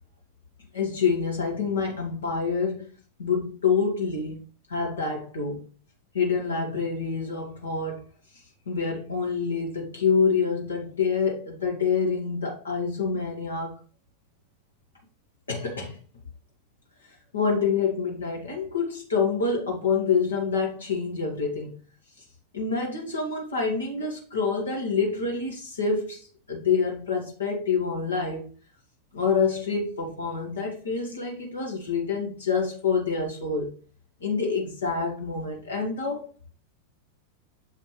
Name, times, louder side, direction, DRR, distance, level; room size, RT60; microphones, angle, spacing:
voice 1, 0.7-2.9 3.2-4.4 4.7-5.6 6.1-8.0 8.6-13.7 15.5-16.0 17.3-21.8 22.5-28.5 29.1-33.7 34.2-36.3, left 5 dB, 70° left, 1.5 m, -27 dB
6.9 x 5.0 x 3.1 m
figure-of-eight pair, 90°, 0 cm